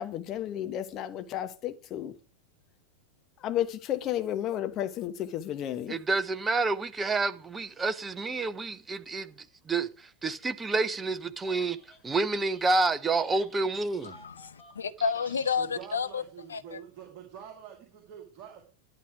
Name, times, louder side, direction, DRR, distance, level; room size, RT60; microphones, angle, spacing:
voice 1, 0.0-2.2 3.4-6.0, left 11 dB, 35° left, 1.1 m, -32 dB
voice 2, 5.9-9.3 9.7-9.9 10.2-11.8 12.0-14.1, right 3 dB, 15° right, 0.8 m, -28 dB
Telephone, 11.3-12.0 12.3-16.0, left 1 dB, 10° left, 4.3 m, -57 dB
voice 3, 14.0-16.2 16.5-16.8, left 6 dB, 70° left, 0.8 m, -31 dB
voice 4, 15.6-18.7, right 9 dB, 40° right, 2.3 m, -46 dB
11.5 x 8.4 x 4.8 m
figure-of-eight pair, 90°, 0 cm